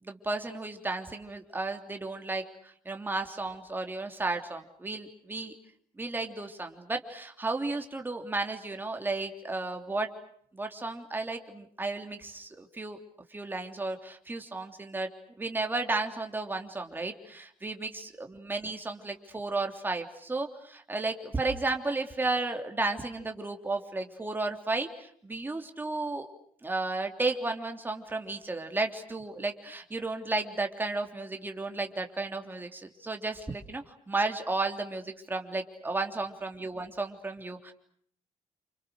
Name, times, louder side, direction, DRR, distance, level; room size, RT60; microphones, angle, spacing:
voice 1, 0.0-5.5 6.0-10.1 10.5-13.0 13.3-15.1 15.4-26.3 26.6-37.7, right 3 dB, 15° right, 4 dB, 3.4 m, -33 dB
30.0 x 28.5 x 6.5 m, 0.65 s
cardioid pair, 155°, 13 cm